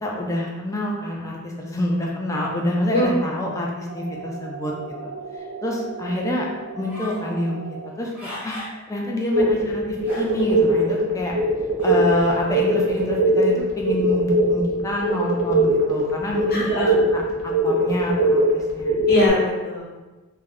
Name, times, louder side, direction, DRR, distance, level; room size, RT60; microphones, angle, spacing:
voice 1, 0.0-4.7 5.0-5.1 5.6-6.5 6.8-8.6 8.9-11.3 11.8-19.0, left 1 dB, 15° left, -2 dB, 0.4 m, -27 dB
sound 1, 3.9-7.9, right 4 dB, 55° right, 0.3 m, -37 dB
sound 2, 6.9-7.3 7.9-8.8 9.3-9.4 10.0-10.6 11.8-12.2, left 1 dB, 10° right, 0.7 m, -37 dB
sound 3, 9.3-19.3, right 1 dB, 85° right, 0.7 m, -21 dB
voice 2, 16.5-17.0 19.1-19.8, left 1 dB, 45° left, -7 dB, 1.0 m, -21 dB
2.3 x 2.1 x 3.5 m, 1.2 s
head